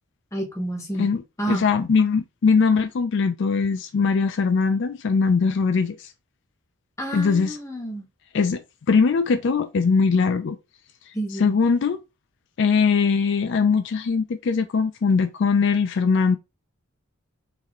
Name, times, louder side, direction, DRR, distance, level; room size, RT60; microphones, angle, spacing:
voice 1, 0.3-1.7 7.0-8.1 11.1-11.6, right 1 dB, 15° left, 0.8 m, -30 dB
voice 2, 1.5-6.0 7.1-7.6 8.3-8.6 8.9-10.6 11.4-12.0 12.6-16.4, left 5 dB, 60° left, 0.4 m, -21 dB
4.0 x 2.6 x 3.0 m
head